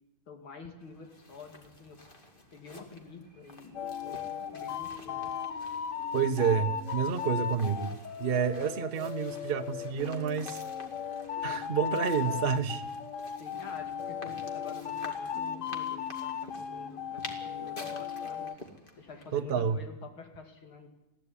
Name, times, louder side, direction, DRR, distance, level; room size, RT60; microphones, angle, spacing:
voice 1, 0.3-2.0 2.5-5.3 13.4-18.5 19.0-20.9, left 4 dB, 80° left, 4 dB, 3.4 m, -48 dB
sound 1, 0.8-19.4, left 2 dB, 25° left, 2.2 m, -51 dB
sound 2, 3.7-18.5, left 7 dB, 45° left, 1.1 m, -36 dB
voice 2, 6.1-10.6 11.4-12.8 19.3-19.8, right 7 dB, 40° right, 7 dB, 0.9 m, -29 dB
21.0 x 15.0 x 10.0 m, 0.98 s
omnidirectional pair, 2.2 m